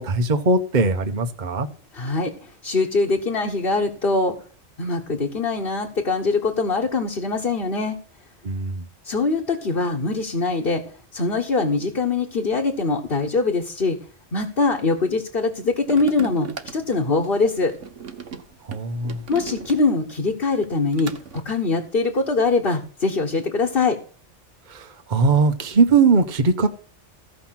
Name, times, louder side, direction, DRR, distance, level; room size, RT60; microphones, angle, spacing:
voice 1, 0.0-1.7 8.4-8.9 18.7-19.2 24.7-26.7, right 4 dB, 40° right, 1.1 m, -20 dB
voice 2, 1.9-2.3 2.6-4.3 4.8-8.0 9.0-10.8 11.1-14.0 14.3-17.7 19.3-24.0, left 3 dB, 50° left, 1.6 m, -23 dB
sound 1, 15.8-20.2 20.5-21.4, right 6 dB, 90° right, 1.5 m, -38 dB
15.5 x 5.8 x 5.9 m
omnidirectional pair, 1.2 m